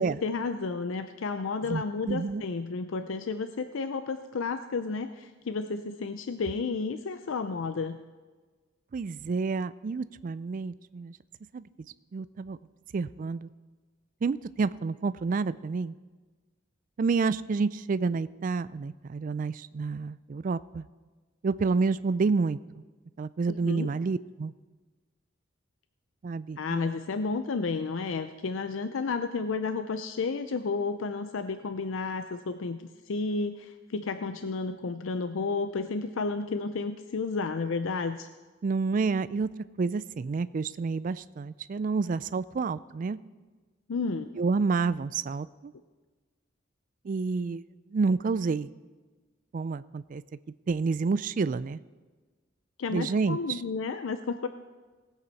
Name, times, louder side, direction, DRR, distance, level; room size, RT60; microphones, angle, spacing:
voice 1, 0.0-8.0 23.6-23.9 26.6-38.3 43.9-44.3 52.8-54.5, left 4 dB, 75° left, 9 dB, 0.5 m, -32 dB
voice 2, 1.7-2.4 8.9-11.2 11.5-11.6 12.1-12.6 12.9-13.5 14.2-16.0 17.0-20.9 21.4-22.8 23.2-24.5 26.2-26.9 38.6-39.5 39.8-43.2 44.4-45.7 47.0-47.6 47.9-48.7 49.5-50.2 50.7-51.8 52.9-53.6, right 4 dB, 40° right, 16 dB, 0.3 m, -29 dB
19.0 x 8.2 x 4.1 m, 1.3 s
head